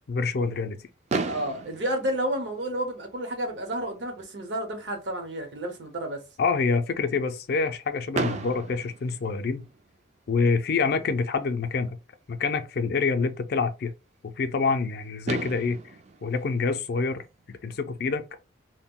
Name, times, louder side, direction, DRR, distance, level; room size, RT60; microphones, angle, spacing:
voice 1, 0.1-0.8 6.4-9.7 10.3-12.0 12.3-13.9 14.2-15.8 16.2-18.2, left 4 dB, 55° left, 0.4 m, -26 dB
Fireworks, 1.1-3.1 3.9-4.0 4.2-4.4 4.7-4.8 8.1-10.0 11.7-11.8 14.8-14.9 15.3-17.6, right 4 dB, 40° right, 0.3 m, -34 dB
voice 2, 1.3-6.2, right 1 dB, 70° right, 0.8 m, -31 dB
2.2 x 2.1 x 3.5 m
head